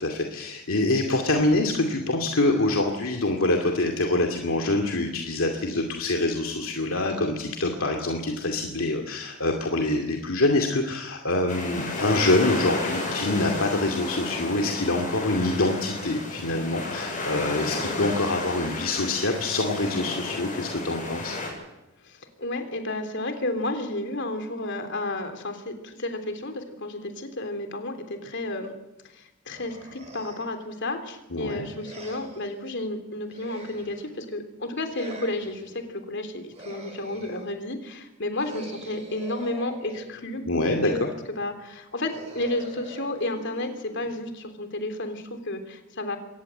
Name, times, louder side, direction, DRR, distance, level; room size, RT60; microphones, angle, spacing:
voice 1, 0.0-21.4 31.3-31.7 40.5-41.1, left 2 dB, 75° left, 3 dB, 2.4 m, -25 dB
sound 1, 11.5-21.5, left 2 dB, 40° left, 7.9 m, -32 dB
voice 2, 22.0-28.7 29.0-40.4 40.8-46.2, left 2 dB, 60° left, 7 dB, 3.4 m, -32 dB
sound 2, 29.5-30.6 31.8-32.6 33.3-34.2 34.9-35.8 36.5-37.6 38.4-40.4 42.0-44.4, right 1 dB, 30° right, 7.0 m, -44 dB
23.5 x 18.5 x 7.9 m, 0.99 s
head